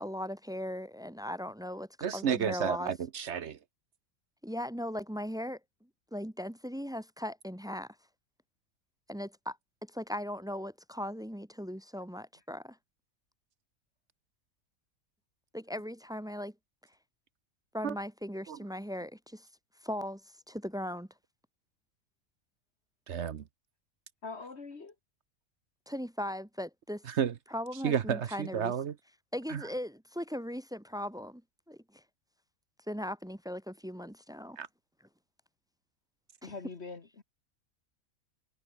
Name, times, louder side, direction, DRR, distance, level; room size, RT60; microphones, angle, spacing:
voice 1, 0.0-2.9 4.4-5.6 6.1-8.0 9.1-12.8 15.5-16.5 17.7-19.5 19.8-21.1 25.9-27.0 27.5-28.7 29.3-31.4 31.7-32.0 32.9-34.6 36.4-36.5, equal, 5° right, 0.5 m, -38 dB
voice 2, 2.0-3.6 17.8-17.9 18.5-18.6 23.1-23.4 27.2-27.3 27.8-28.9 29.5-29.6 34.6-34.7, right 8 dB, 60° right, 1.1 m, -31 dB
voice 3, 24.2-25.0 36.4-37.2, left 4 dB, 50° left, 2.0 m, -43 dB
omnidirectional pair, 1.4 m